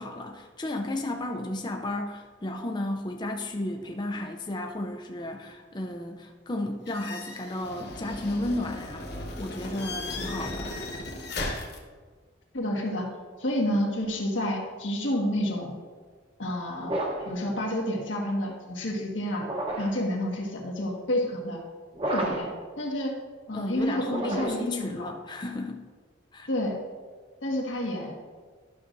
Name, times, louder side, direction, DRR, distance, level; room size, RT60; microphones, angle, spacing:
voice 1, 0.0-10.7 23.5-25.8 26.3-26.5, left 1 dB, 25° left, 3 dB, 0.5 m, -33 dB
sound 1, 6.9-11.8, left 2 dB, 60° left, 1.3 m, -36 dB
voice 2, 12.5-13.1 13.4-15.7 16.4-16.9 17.2-19.4 19.8-21.6 22.1-22.5 22.8-23.1 23.5-25.1 26.5-26.8 27.4-28.2, left 1 dB, 90° left, -1 dB, 1.7 m, -29 dB
sound 2, 16.8-17.4 19.4-20.0 21.9-22.6 24.0-24.8, right 1 dB, 30° right, 1.0 m, -31 dB
12.0 x 6.4 x 2.6 m, 1.5 s
head